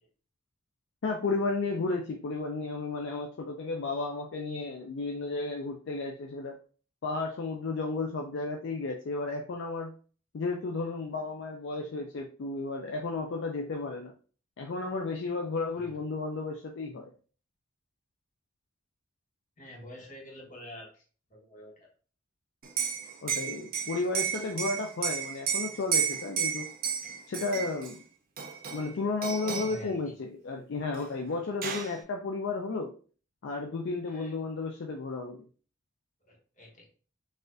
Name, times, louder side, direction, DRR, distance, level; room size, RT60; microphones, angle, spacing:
voice 1, 1.0-6.6 7.0-9.9 10.3-14.1 14.6-17.1 23.2-26.7 27.3-28.0 28.7-32.9 33.4-35.4, left 3 dB, 65° left, 2 dB, 0.4 m, -33 dB
voice 2, 19.6-20.9 21.3-21.9 29.4-29.9 34.1-34.3 36.3-36.9, left 1 dB, 40° left, -2 dB, 1.3 m, -46 dB
Liquid, 22.6-27.9 28.4-28.9 29.2-29.8 31.0-31.1 31.3-32.0, right 7 dB, 45° right, 0.5 m, -32 dB
4.0 x 2.5 x 2.5 m, 0.39 s
head